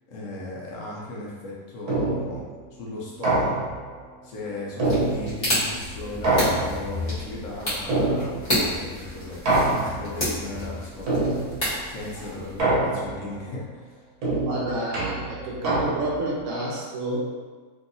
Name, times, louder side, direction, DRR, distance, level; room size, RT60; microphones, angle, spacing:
voice 1, 0.1-2.5 2.8-3.7 4.2-9.4 9.6-11.3 11.9-14.0, left 2 dB, 65° left, -5 dB, 1.0 m, -37 dB
sound 1, 1.9-2.4 3.2-3.9 4.8-5.6 6.2-7.0 7.9-8.6 9.5-10.2 11.1-11.7 12.6-13.3 14.2-16.3, right 2 dB, 80° right, 1.3 m, -25 dB
sound 2, 4.8-12.6, left 1 dB, 25° left, 1.1 m, -30 dB
voice 2, 14.4-17.2, right 1 dB, 65° right, -5 dB, 1.0 m, -29 dB
3.0 x 2.7 x 2.6 m, 1.4 s
omnidirectional pair, 1.6 m